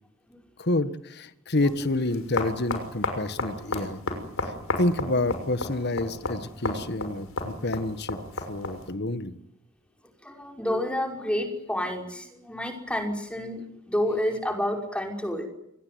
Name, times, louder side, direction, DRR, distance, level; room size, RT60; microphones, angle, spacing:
voice 1, 0.6-4.0 4.8-8.2 8.5-9.3, left 2 dB, 50° left, 12 dB, 1.6 m, -28 dB
sound 1, 1.6-8.9, left 2 dB, 70° left, 6.2 m, -33 dB
voice 2, 10.2-15.5, left 1 dB, 5° left, 3 dB, 5.6 m, -29 dB
27.5 x 21.0 x 9.6 m, 0.80 s
head